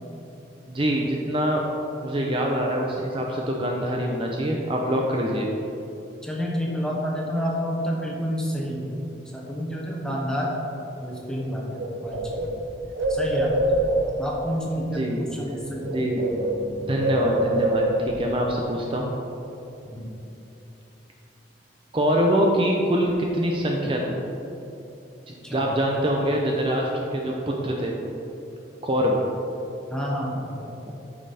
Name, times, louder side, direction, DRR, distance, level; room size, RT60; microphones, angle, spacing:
voice 1, 0.7-1.6 2.0-5.5 14.9-15.2 15.9-16.2 16.8-17.9 18.2-19.1 21.9-24.2 25.5-27.9 28.8-29.2, equal, 30° right, -1 dB, 0.6 m, -24 dB
voice 2, 6.2-8.9 9.3-10.5 11.0-12.5 13.1-13.9 14.2-15.9 19.8-20.1 25.4-25.7 29.9-30.7, equal, 5° left, -3 dB, 1.1 m, -29 dB
Bird, 11.3-11.4 11.7-14.2 15.3-15.5 15.8-18.2, right 1 dB, 65° right, 0.7 m, -25 dB
8.9 x 5.4 x 4.2 m, 2.9 s
head